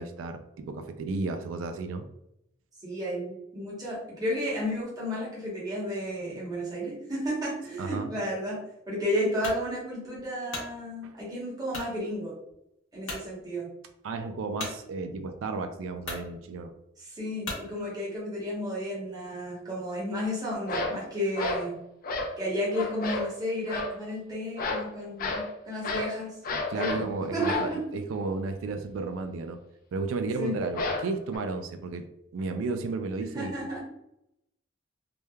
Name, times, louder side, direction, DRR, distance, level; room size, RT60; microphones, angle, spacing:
voice 1, 0.0-2.1 7.8-8.1 11.0-11.1 14.0-16.7 26.7-29.6 29.9-32.0 32.3-33.5, right 3 dB, 80° right, 7 dB, 0.3 m, -33 dB
voice 2, 2.8-8.6 8.9-12.3 12.9-13.7 17.0-21.8 22.4-26.4 26.7-27.8 30.2-30.5 33.3-33.8, equal, 20° right, -6 dB, 1.0 m, -32 dB
sound 1, 9.4-9.6 10.2-10.7 11.7-11.9 12.5-12.6 13.0-13.3 14.6-14.8 15.6-15.7 16.0-16.3 17.4-17.7, left 2 dB, 80° left, 0.9 m, -36 dB
sound 2, 20.7-21.0 21.4-21.7 22.0-22.4 22.7-23.3 23.7-24.0 24.6-24.9 25.2-25.5 25.8-26.2 26.4-27.1 27.4-27.7 30.8-31.4, left 3 dB, 45° left, 0.4 m, -31 dB
3.2 x 2.1 x 2.2 m, 0.80 s
head